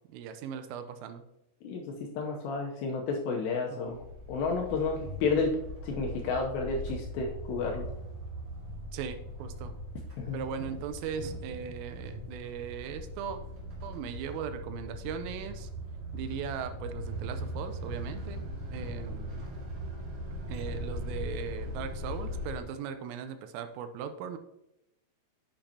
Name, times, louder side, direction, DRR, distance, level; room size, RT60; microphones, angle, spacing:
voice 1, 0.1-1.2 3.7-4.0 8.9-9.7 10.3-13.4 13.8-15.7 16.1-19.4 20.5-24.4, right 7 dB, 85° right, 9 dB, 3.3 m, -39 dB
voice 2, 1.6-5.6 5.8-7.9 10.2-10.4, left 4 dB, 80° left, 0 dB, 2.6 m, -31 dB
sound 1, 3.8-22.6, equal, 50° right, 1.5 m, -40 dB
8.7 x 7.9 x 2.8 m, 0.85 s
omnidirectional pair, 5.8 m